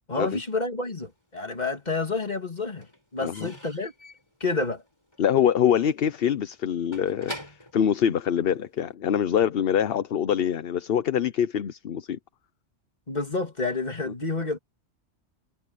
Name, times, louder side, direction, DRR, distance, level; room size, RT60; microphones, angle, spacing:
voice 1, 0.1-3.9 4.4-4.8 13.1-14.6, left 3 dB, 40° left, 2.8 m, -29 dB
Slam / Squeak / Wood, 1.1-1.9 2.2-8.9, left 1 dB, 25° left, 6.1 m, -45 dB
voice 2, 3.2-3.5 5.2-12.2 14.1-14.2, left 9 dB, 60° left, 0.9 m, -24 dB
omnidirectional pair, 1.1 m